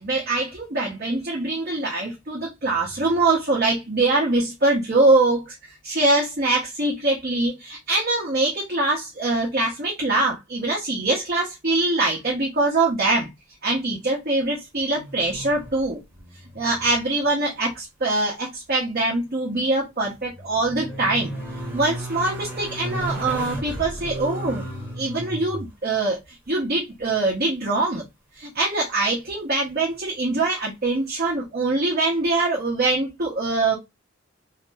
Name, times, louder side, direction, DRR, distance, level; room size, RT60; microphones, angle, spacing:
voice 1, 0.0-13.3 13.6-16.0 16.5-21.3 21.7-24.6 24.9-26.2 26.5-28.0 28.3-33.8, right 2 dB, 45° right, 0.9 m, -23 dB
sound 1, 14.9-15.9 16.2-17.0 17.2-17.3 19.8-25.7 28.6-28.7, right 1 dB, 10° right, 1.0 m, -34 dB
2.7 x 2.1 x 3.4 m
head